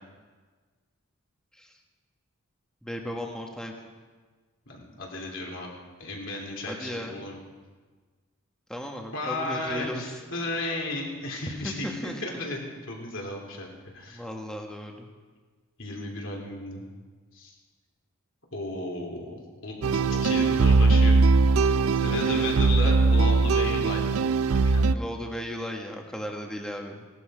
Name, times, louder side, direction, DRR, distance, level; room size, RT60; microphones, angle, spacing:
voice 1, 2.8-3.7 6.7-7.2 8.7-10.2 11.6-12.2 14.1-15.1 22.1-22.6 24.9-27.1, equal, 5° left, 1 dB, 1.4 m, -36 dB
voice 2, 4.7-5.7 6.0-7.4 9.1-14.2 15.8-16.8 17.3-17.5 18.5-21.2 22.0-24.0 24.5-24.9, left 2 dB, 65° left, 0 dB, 3.1 m, -34 dB
sound 1, 19.8-25.0, right 4 dB, 90° right, 0.5 m, -21 dB
18.0 x 12.5 x 5.0 m, 1.4 s
head